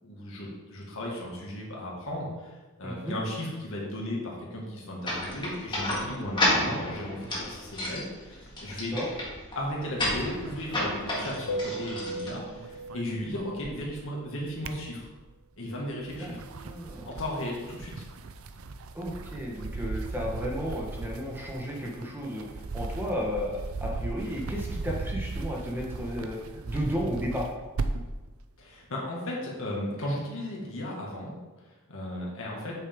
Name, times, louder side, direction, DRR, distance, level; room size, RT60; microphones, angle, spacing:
voice 1, 0.0-8.9 9.6-15.1 15.6-16.4 17.0-18.0 28.6-31.3 31.9-32.7, left 1 dB, 65° left, -3 dB, 2.1 m, -35 dB
voice 2, 2.8-3.2 8.9-9.1 16.2-16.3 16.6-17.1 18.9-26.4 26.6-27.5, equal, 10° right, -3 dB, 1.3 m, -33 dB
sound 1, 5.0-12.9, left 1 dB, 20° left, 2.1 m, -32 dB
sound 2, 10.0-12.2 12.4-14.0 14.4-15.4 16.0-28.2, right 3 dB, 70° right, 0.5 m, -37 dB
sound 3, 11.5-13.7 15.9-17.4, right 1 dB, 85° left, 0.6 m, -39 dB
8.2 x 6.5 x 3.7 m, 1.2 s
head